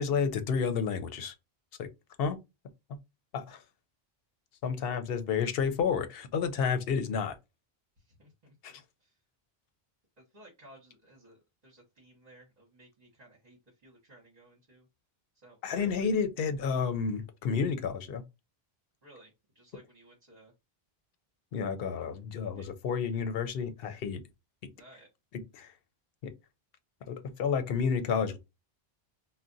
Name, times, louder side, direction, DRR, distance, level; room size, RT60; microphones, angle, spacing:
voice 1, 0.0-1.3 1.8-1.9 2.2-2.4 3.3-3.6 4.6-7.4 8.6-8.8 15.6-18.2 21.5-24.2 25.5-25.7 26.2-26.3 27.1-28.4, left 6 dB, 70° left, 0.8 m, -30 dB
voice 2, 8.0-9.2 10.2-14.9 15.4-16.1 19.0-20.5 22.6-22.7 24.7-25.1, right 1 dB, 40° right, 1.1 m, -57 dB
2.4 x 2.1 x 3.8 m
omnidirectional pair, 1.0 m